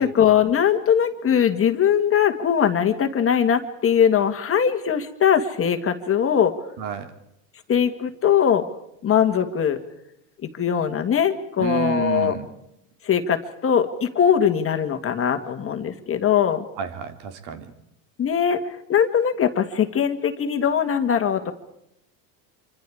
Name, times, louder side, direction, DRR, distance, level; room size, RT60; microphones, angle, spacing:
voice 1, 0.0-6.5 7.7-8.7 9.0-9.8 10.6-12.3 13.0-16.7 18.2-18.6 18.9-21.5, left 8 dB, 30° left, 7 dB, 1.9 m, -21 dB
voice 2, 6.8-7.1 11.6-12.5 16.8-17.7, right 6 dB, 55° right, 7 dB, 3.1 m, -29 dB
26.5 x 25.0 x 4.9 m, 0.79 s
supercardioid pair, 130°, 47 cm